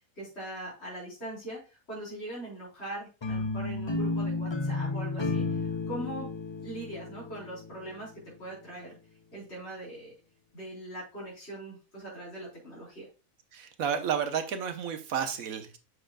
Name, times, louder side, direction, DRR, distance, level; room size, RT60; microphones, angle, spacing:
voice 1, 0.2-1.6 1.9-5.5 5.9-6.3 6.6-8.1 8.4-9.0 9.3-10.2 10.5-13.1, right 1 dB, 50° left, -7 dB, 4.4 m, -41 dB
sound 1, 3.2-8.3, left 3 dB, 30° left, 0.6 m, -32 dB
voice 2, 13.5-15.8, right 7 dB, 80° right, 8 dB, 1.4 m, -31 dB
7.8 x 6.5 x 2.3 m, 0.31 s
omnidirectional pair, 1.4 m